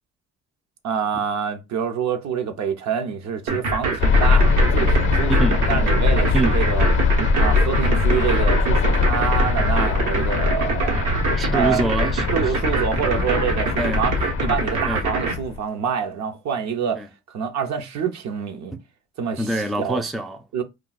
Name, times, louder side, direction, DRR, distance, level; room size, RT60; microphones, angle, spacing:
voice 1, 0.8-6.9 7.4-11.0 11.5-11.8 12.3-14.1 14.4-18.7 19.2-19.5 19.8-20.0 20.5-20.6, right 7 dB, 65° right, 0.7 m, -26 dB
sound 1, 3.5-15.3, right 4 dB, 85° right, 1.1 m, -25 dB
sound 2, 4.0-15.6, left 4 dB, 45° left, 0.6 m, -21 dB
voice 2, 5.3-5.7 6.3-6.6 11.4-12.6 13.8-14.0 14.9-15.1 16.9-17.1 18.7-18.8 19.4-20.4, right 1 dB, ahead, 0.3 m, -26 dB
2.3 x 2.3 x 3.9 m
cardioid pair, 90°, 30 cm